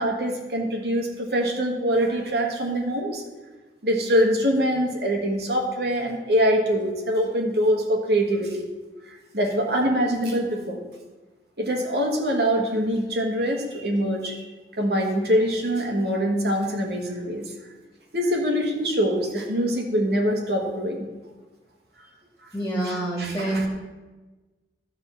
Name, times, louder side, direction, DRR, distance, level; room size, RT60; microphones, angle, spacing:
voice 1, 0.0-3.2 3.8-8.7 9.3-10.8 11.6-14.4 14.8-17.4 18.1-21.1 22.8-23.7, equal, 70° right, 1 dB, 1.6 m, -24 dB
voice 2, 22.5-23.7, right 1 dB, 15° left, -4 dB, 2.7 m, -26 dB
11.5 x 4.0 x 7.0 m, 1.2 s
head